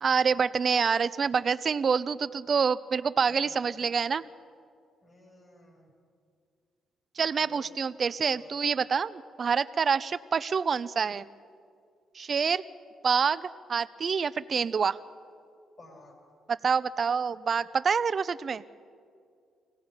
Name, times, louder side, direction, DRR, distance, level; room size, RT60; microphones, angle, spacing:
voice 1, 0.0-4.2 7.2-11.3 12.1-12.6 13.0-15.0 16.5-18.6, right 6 dB, 45° right, 15 dB, 0.6 m, -27 dB
voice 2, 5.0-5.9 7.4-7.6 8.3-8.6 15.8-16.1, left 2 dB, 35° left, 0 dB, 7.3 m, -53 dB
26.0 x 18.0 x 5.6 m, 2.3 s
cardioid pair, 90°, 0 cm